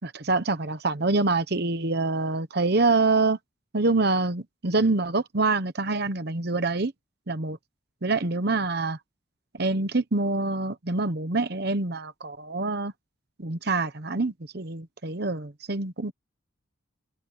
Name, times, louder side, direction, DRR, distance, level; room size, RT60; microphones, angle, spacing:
voice 1, 0.0-3.4 3.7-6.9 7.3-7.6 8.0-9.0 9.5-12.9 13.4-16.1, right 3 dB, 55° right, 1.0 m, -26 dB
open air
head